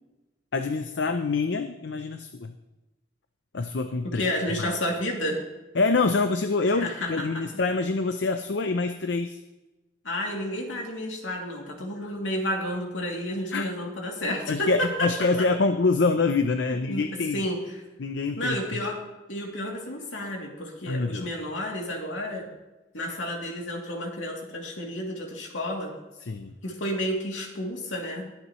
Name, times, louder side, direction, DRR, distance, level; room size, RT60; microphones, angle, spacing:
voice 1, 0.5-2.5 3.5-4.3 4.6-4.7 5.8-9.4 13.5-13.7 14.5-17.5 18.0-18.6 20.9-21.3 26.2-26.5, left 3 dB, 70° left, 8 dB, 0.6 m, -26 dB
voice 2, 4.0-5.4 6.7-7.4 10.0-15.5 16.9-17.6 18.4-19.0 19.3-22.5 22.9-25.9 26.6-28.2, left 1 dB, 85° left, -1 dB, 2.8 m, -31 dB
21.0 x 8.5 x 3.1 m, 1.1 s
head